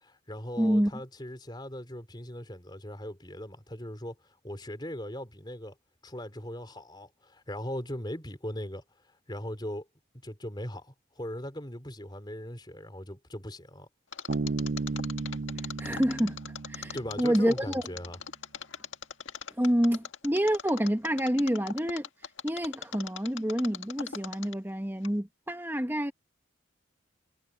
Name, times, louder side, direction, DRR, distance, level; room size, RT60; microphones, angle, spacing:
voice 1, 0.0-4.2 4.4-5.8 6.0-8.8 9.3-9.9 10.2-13.9 16.9-18.2, equal, 20° left, 3.7 m, -39 dB
voice 2, 0.6-0.9 15.8-16.4 16.7-17.8 19.6-22.1 22.4-26.1, equal, 10° right, 1.5 m, -27 dB
Mechanisms, 14.1-24.7 25.0-25.1, left 7 dB, 75° left, 1.8 m, -40 dB
Bass guitar, 14.3-17.7, right 3 dB, 55° right, 0.5 m, -34 dB
head